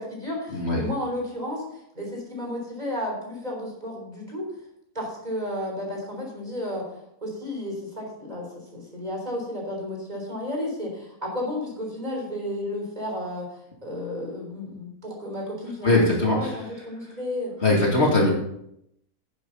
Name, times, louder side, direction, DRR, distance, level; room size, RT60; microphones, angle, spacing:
voice 1, 0.0-4.5 4.9-6.9 7.2-8.5 8.7-13.5 13.8-17.5, left 1 dB, 25° right, -1 dB, 3.7 m, -32 dB
voice 2, 0.5-0.8 15.8-16.6 17.6-18.3, left 2 dB, 45° left, -2 dB, 2.6 m, -20 dB
11.5 x 10.0 x 4.0 m, 0.77 s
omnidirectional pair, 1.6 m